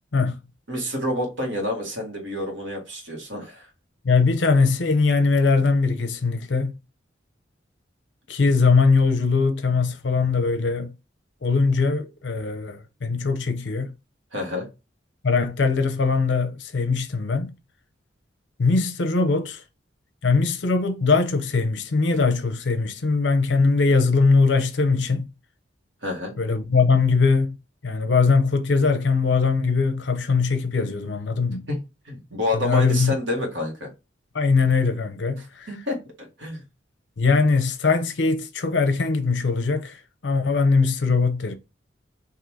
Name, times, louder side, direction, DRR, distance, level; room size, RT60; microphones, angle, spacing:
voice 1, 0.7-3.7 14.3-14.7 26.0-26.3 31.7-31.8 32.0-33.9 35.7-36.0 36.4-36.6, left 1 dB, 90° right, 1.7 m, -28 dB
voice 2, 4.0-6.7 8.3-10.9 11.4-13.9 15.2-17.5 18.6-19.6 20.2-25.3 26.4-27.6 27.8-31.6 32.6-33.1 34.3-35.8 37.2-41.5, left 4 dB, 75° left, 0.6 m, -21 dB
3.7 x 2.8 x 4.6 m
head